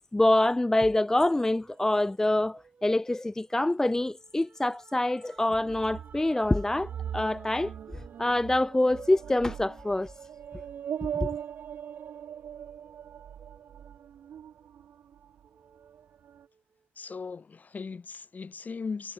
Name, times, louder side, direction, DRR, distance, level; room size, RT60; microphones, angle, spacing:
voice 1, 0.1-7.7 8.2-10.1 11.2-11.3, left 1 dB, 10° left, 0.3 m, -25 dB
sound 1, 1.2-15.0 15.4-17.1, right 5 dB, 40° right, 5.2 m, -58 dB
sound 2, 5.6-15.5 15.8-16.5, right 9 dB, 60° right, 0.8 m, -40 dB
voice 2, 17.0-19.1, left 5 dB, 40° left, 1.3 m, -38 dB
supercardioid pair, 55°, 4 cm